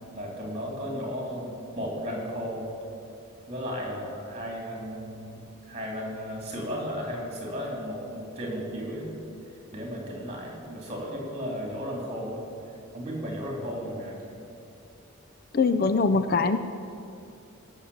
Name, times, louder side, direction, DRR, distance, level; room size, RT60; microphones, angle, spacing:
voice 1, 0.1-2.7 3.5-9.1 9.7-12.4 12.9-14.4, equal, 30° right, 0 dB, 3.4 m, -34 dB
voice 2, 15.5-16.6, left 4 dB, 45° left, 11 dB, 0.5 m, -22 dB
17.0 x 6.7 x 8.7 m, 2.6 s
head